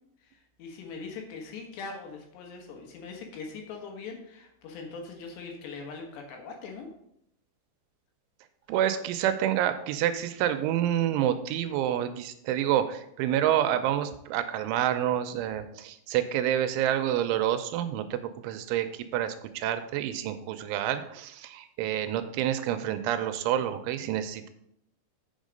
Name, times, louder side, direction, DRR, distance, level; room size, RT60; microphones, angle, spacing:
voice 1, 0.2-6.9, left 4 dB, 70° left, 2 dB, 3.3 m, -41 dB
voice 2, 8.7-24.5, right 11 dB, 85° right, 9 dB, 3.0 m, -28 dB
8.0 x 6.3 x 5.2 m, 0.76 s
omnidirectional pair, 5.6 m